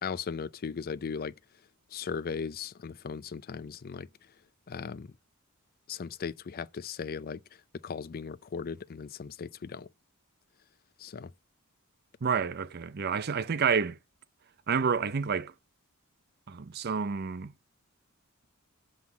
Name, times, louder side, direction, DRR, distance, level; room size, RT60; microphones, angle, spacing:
voice 1, 0.0-1.3 1.9-4.1 4.7-5.1 5.9-7.4 7.8-9.9 11.0-11.3, left 5 dB, 45° left, 0.4 m, -37 dB
voice 2, 12.2-13.9 14.7-15.5 16.5-17.5, right 6 dB, 45° right, 0.6 m, -29 dB
7.7 x 5.7 x 7.1 m
head